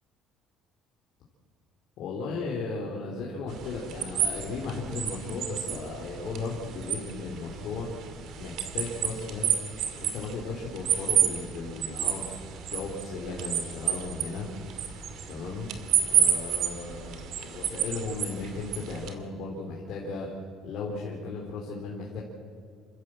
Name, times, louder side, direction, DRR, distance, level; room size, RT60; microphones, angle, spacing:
voice 1, 2.0-7.9 8.4-9.6 10.0-12.3 12.7-14.5 15.3-15.7 16.1-20.3 20.6-22.2, left 4 dB, 55° left, -2 dB, 3.4 m, -36 dB
sound 1, 3.5-19.1, right 9 dB, 55° right, 2.3 m, -31 dB
28.0 x 15.5 x 7.6 m, 2.4 s
cardioid pair, 170°, 0 cm